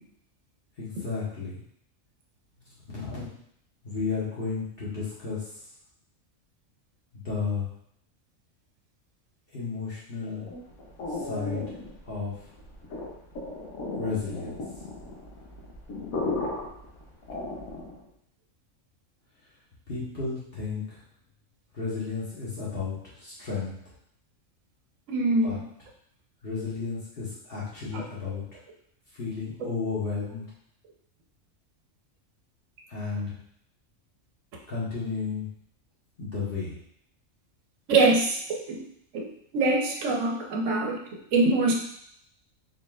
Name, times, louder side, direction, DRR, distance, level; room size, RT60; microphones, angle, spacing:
voice 1, 0.8-1.6 3.1-3.3 3.8-5.4 7.1-7.7 9.5-10.5 11.1-11.6 12.0-12.4 14.0-14.6 19.9-21.0 21.7-23.7 25.4-25.6 26.4-28.4 29.1-30.4 32.9-33.3 34.7-35.5 36.2-36.7, left 4 dB, 45° left, -8 dB, 1.4 m, -33 dB
sound 1, 10.2-18.1, left 2 dB, 80° left, 1.3 m, -36 dB
voice 2, 25.1-25.6 27.9-28.0 37.9-38.8 39.1-39.2 39.5-41.0 41.3-41.7, right 3 dB, 70° right, 0 dB, 1.1 m, -24 dB
4.2 x 3.9 x 2.4 m, 0.69 s
omnidirectional pair, 1.4 m